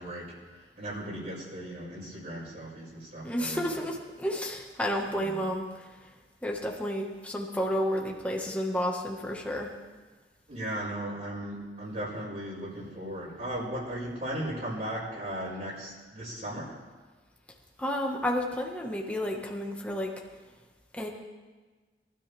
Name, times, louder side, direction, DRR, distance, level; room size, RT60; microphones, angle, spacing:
voice 1, 0.0-3.8 5.1-5.4 10.5-16.7, right 1 dB, 50° right, -8 dB, 5.6 m, -37 dB
voice 2, 3.2-5.9 6.4-9.7 17.8-20.1 20.9-21.1, equal, 10° left, 0 dB, 1.7 m, -31 dB
23.5 x 13.0 x 3.6 m, 1.3 s
head